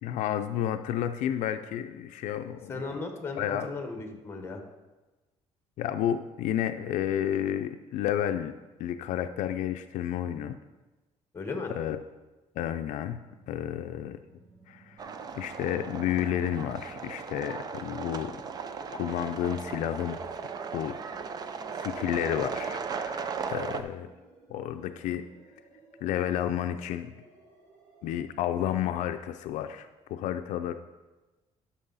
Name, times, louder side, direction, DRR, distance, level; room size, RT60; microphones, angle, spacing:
voice 1, 0.0-3.0 3.4-3.7 4.1-4.2 5.8-8.5 8.8-10.6 11.7-12.0 12.6-14.2 14.7-15.1 15.3-18.4 18.9-20.2 20.7-21.0 21.8-24.1 24.5-25.2 26.0-27.1 28.0-30.7, left 10 dB, 80° left, 8 dB, 0.5 m, -31 dB
voice 2, 2.7-4.6 11.3-11.7, left 3 dB, 20° left, 4 dB, 1.3 m, -36 dB
sound 1, 13.3-28.2, right 2 dB, 65° right, 2.2 m, -57 dB
sound 2, 15.0-23.8, right 5 dB, 30° right, 0.5 m, -37 dB
11.5 x 6.3 x 4.1 m, 1.2 s
cardioid pair, 150°, 12 cm